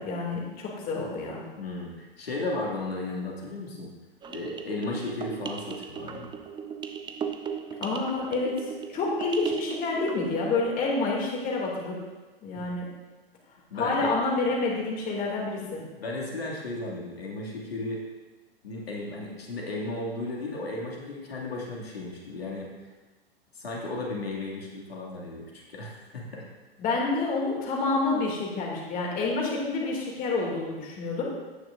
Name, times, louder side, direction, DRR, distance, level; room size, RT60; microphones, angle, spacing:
voice 1, 0.0-1.4 7.8-12.0 12.4-12.9 13.7-15.8 26.8-31.3, left 3 dB, 30° left, -2 dB, 2.5 m, -28 dB
voice 2, 1.6-3.9 4.3-6.3 13.7-14.1 15.6-15.7 16.0-18.0 18.6-22.7 23.5-26.5, left 2 dB, 80° left, -3 dB, 2.4 m, -35 dB
sound 1, 4.2-10.5, right 7 dB, 15° right, 0.6 m, -37 dB
17.0 x 6.2 x 2.6 m, 1.2 s
hypercardioid pair, 110°, 30 cm